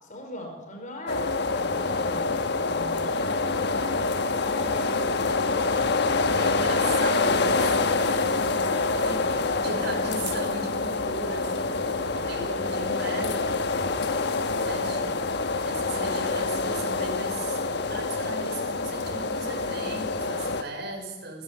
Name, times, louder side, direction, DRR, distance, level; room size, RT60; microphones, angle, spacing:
voice 1, 0.0-3.3 4.4-5.4, left 1 dB, 45° left, 3 dB, 5.0 m, -40 dB
sound 1, 1.1-20.6, left 3 dB, 65° left, 1.2 m, -26 dB
voice 2, 6.4-13.5 14.7-17.6 17.9-21.4, right 2 dB, 60° right, 2 dB, 5.7 m, -37 dB
21.0 x 16.0 x 8.5 m, 1.1 s
head